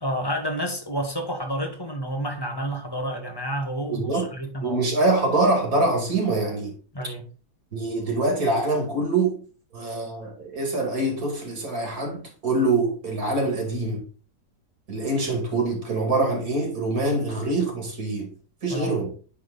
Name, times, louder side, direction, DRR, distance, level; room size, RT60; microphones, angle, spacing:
voice 1, 0.0-5.1 6.9-7.2 18.7-19.0, equal, 15° left, 1.0 m, -30 dB
voice 2, 3.9-4.3 4.6-6.7 7.7-9.4 9.7-14.0 14.9-18.3 18.6-19.1, right 2 dB, 60° right, 2.7 m, -24 dB
9.8 x 3.7 x 3.9 m
omnidirectional pair, 1.8 m